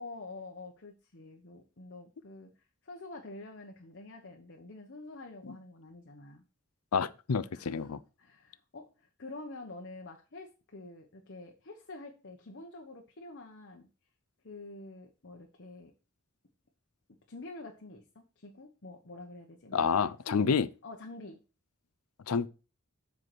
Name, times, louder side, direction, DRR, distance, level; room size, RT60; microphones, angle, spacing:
voice 1, 0.0-2.5 2.8-6.4 7.5-13.9 14.4-15.9 17.3-19.9 20.3-20.5 20.8-21.4, left 2 dB, 55° left, 1.1 m, -47 dB
voice 2, 6.9-8.0 19.7-20.7 22.3-22.5, left 6 dB, 85° left, 0.6 m, -29 dB
7.6 x 4.7 x 6.2 m
head